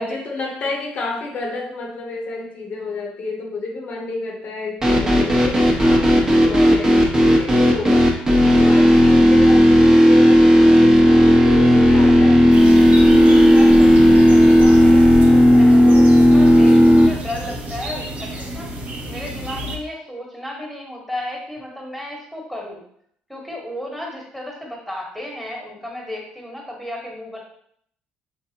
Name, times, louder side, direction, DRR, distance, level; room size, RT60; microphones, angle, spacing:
voice 1, 0.0-12.6, left 3 dB, 50° left, 1 dB, 0.8 m, -30 dB
sound 1, 4.8-17.1, equal, 20° right, 0.9 m, -12 dB
sound 2, 12.5-19.8, right 2 dB, 45° right, 0.7 m, -29 dB
voice 2, 13.2-18.7 19.1-22.8 23.3-27.4, left 1 dB, ahead, -1 dB, 1.3 m, -34 dB
3.9 x 3.5 x 2.8 m, 0.66 s
cardioid pair, 100°, 3 cm